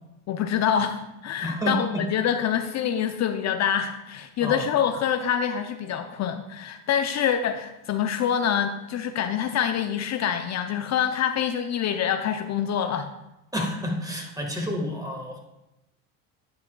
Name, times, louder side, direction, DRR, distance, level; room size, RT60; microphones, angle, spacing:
voice 1, 0.3-13.1, left 8 dB, 40° left, 7 dB, 0.6 m, -26 dB
voice 2, 1.4-2.0 4.4-4.6 13.5-15.4, equal, 10° right, 0 dB, 1.7 m, -29 dB
11.0 x 7.4 x 2.3 m, 0.95 s
hypercardioid pair, 75°, 40 cm